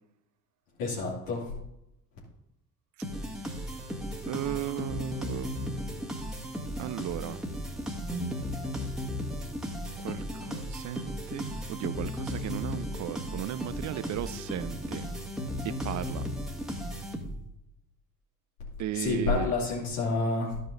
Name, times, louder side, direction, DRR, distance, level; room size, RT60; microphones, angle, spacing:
voice 1, 0.8-1.5 18.9-20.6, left 3 dB, 70° left, -6 dB, 2.7 m, -29 dB
sound 1, 3.0-17.6, equal, ahead, 1.9 m, -35 dB
voice 2, 4.3-5.5 6.8-7.4 10.0-15.1 15.6-16.3 18.8-19.5, right 13 dB, 40° right, 15 dB, 0.6 m, -35 dB
12.5 x 5.5 x 3.9 m, 0.83 s
figure-of-eight pair, 55°, 47 cm